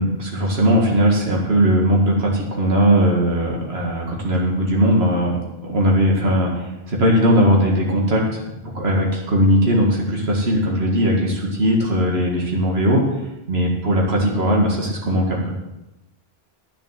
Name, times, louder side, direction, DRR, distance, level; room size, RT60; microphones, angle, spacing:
voice 1, 0.0-5.3 5.6-8.4 8.7-13.0 13.5-15.5, equal, 85° right, -2 dB, 2.2 m, -18 dB
10.5 x 7.1 x 7.5 m, 0.95 s
omnidirectional pair, 1.0 m